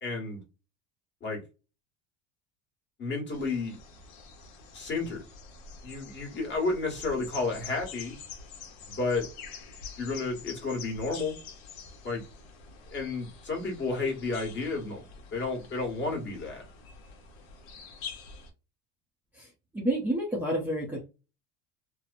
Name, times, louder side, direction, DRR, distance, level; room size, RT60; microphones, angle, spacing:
voice 1, 0.0-0.4 1.2-1.4 3.0-3.8 4.7-5.2 5.8-8.1 8.9-9.3 10.0-11.3 12.0-12.2 12.9-16.6, left 3 dB, 30° left, 1.3 m, -31 dB
sound 1, 3.3-18.5, left 5 dB, 65° left, 0.9 m, -47 dB
voice 2, 19.7-21.1, right 1 dB, 5° right, 0.6 m, -29 dB
2.9 x 2.1 x 2.5 m
supercardioid pair, 125°, 36 cm